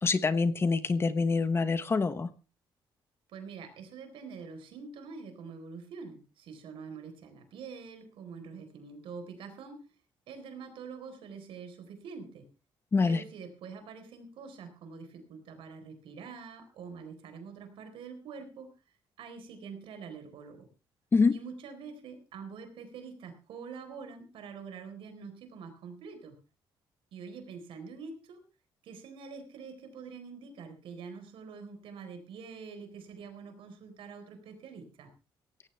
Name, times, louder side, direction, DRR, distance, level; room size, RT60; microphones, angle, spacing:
voice 1, 0.0-2.3 12.9-13.2 21.1-21.4, left 4 dB, 25° left, 12 dB, 1.1 m, -25 dB
voice 2, 3.3-9.9 10.3-12.5 13.0-18.7 19.2-20.7 21.3-26.3 27.1-28.4 28.8-35.1, right 5 dB, 80° right, 7 dB, 4.1 m, -45 dB
17.5 x 15.0 x 3.4 m, 0.32 s
cardioid pair, 135°, 9 cm